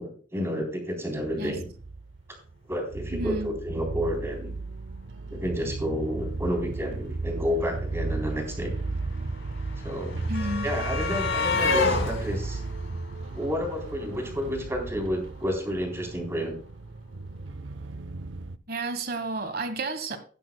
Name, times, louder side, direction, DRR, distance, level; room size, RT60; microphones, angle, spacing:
voice 1, 0.0-1.7 2.3-2.4 2.7-4.5 5.3-8.7 9.8-10.2 10.6-12.6 13.3-16.6, equal, 15° right, 3.6 m, -30 dB
sound 1, 1.2-18.6, right 3 dB, 75° right, 0.6 m, -35 dB
voice 2, 3.1-3.5 10.3-10.7 18.7-20.2, right 2 dB, 50° right, 1.4 m, -31 dB
sound 2, 7.5-7.6 7.8-14.0 15.2-15.3 15.6-15.7, left 4 dB, 80° left, 4.4 m, -30 dB
16.0 x 10.5 x 2.3 m
head